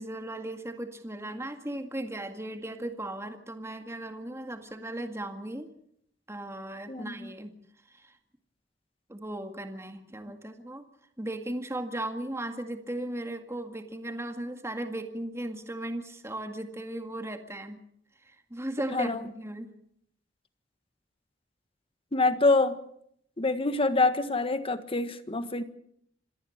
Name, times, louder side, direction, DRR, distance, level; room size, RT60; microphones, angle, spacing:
voice 1, 0.0-5.7 6.3-7.5 7.9-8.1 9.1-10.8 11.2-17.8 18.2-19.7, right 1 dB, 15° right, 6 dB, 2.0 m, -37 dB
voice 2, 6.9-7.3 18.9-19.2 22.1-22.8 23.4-25.6, left 3 dB, 30° left, 11 dB, 1.5 m, -26 dB
26.5 x 17.5 x 6.6 m, 0.71 s
head